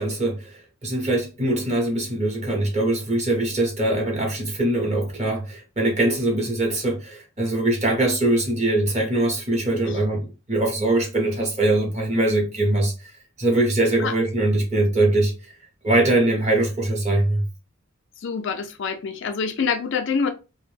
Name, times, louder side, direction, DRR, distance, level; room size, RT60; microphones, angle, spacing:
voice 1, 0.0-13.1 13.4-15.5 15.8-17.4, right 1 dB, 30° right, 0.8 m, -22 dB
voice 2, 18.2-20.3, left 5 dB, 60° left, 0.4 m, -26 dB
2.5 x 2.1 x 3.1 m
head